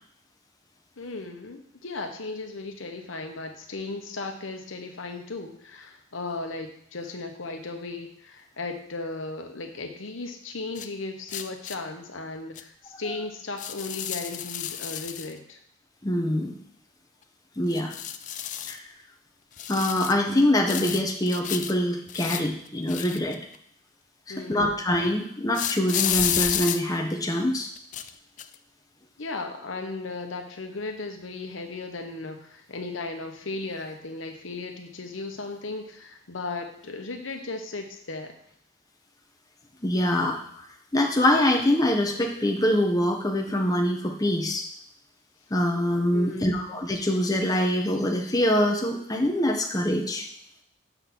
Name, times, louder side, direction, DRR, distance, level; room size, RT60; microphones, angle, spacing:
voice 1, 1.0-15.6 24.3-24.8 29.2-38.3 46.1-46.6, left 3 dB, 85° left, 4 dB, 1.0 m, -36 dB
sound 1, 10.7-10.9 11.3-11.7 12.5-12.6 13.6-15.3 17.7-18.8 19.6-20.2 20.7-21.7 22.1-23.6 25.5-26.8 27.8-28.1 28.4-28.5, left 10 dB, 40° left, 0.3 m, -31 dB
voice 2, 16.0-16.5 17.6-17.9 18.7-18.8 19.7-23.4 24.5-27.7 39.8-40.4 40.9-44.6 45.5-50.3, left 1 dB, 20° left, 2 dB, 0.8 m, -24 dB
6.9 x 3.9 x 6.0 m, 0.68 s
head